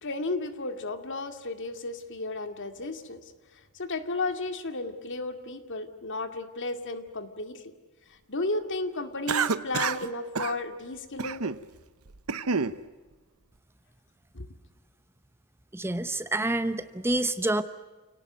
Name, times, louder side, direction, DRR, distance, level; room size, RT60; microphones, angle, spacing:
voice 1, 0.0-3.3 3.7-7.6 8.3-11.4 14.3-14.5, left 2 dB, 60° left, 8 dB, 2.2 m, -33 dB
Cough, 9.3-10.1 10.3-10.6 11.2-11.6 12.1-12.8, right 5 dB, 80° right, 0.9 m, -28 dB
voice 2, 15.7-17.6, right 2 dB, 10° right, 11 dB, 0.9 m, -27 dB
29.5 x 18.0 x 9.2 m, 1.3 s
head